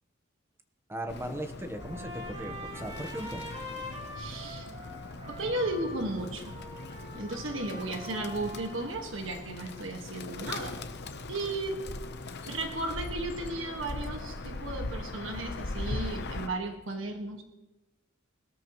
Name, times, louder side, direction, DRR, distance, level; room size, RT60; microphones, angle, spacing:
voice 1, 0.9-3.6, right 1 dB, 15° right, 6 dB, 1.1 m, -38 dB
Bird, 1.1-16.5, left 2 dB, 60° left, 0.9 m, -40 dB
Trumpet, 1.7-9.1, left 1 dB, 30° right, 3.3 m, -44 dB
voice 2, 4.1-4.7 5.3-6.5 7.1-10.8 11.3-11.8 12.5-17.4, right 2 dB, 70° right, 4 dB, 1.7 m, -35 dB
20.5 x 13.0 x 3.1 m, 1.0 s
head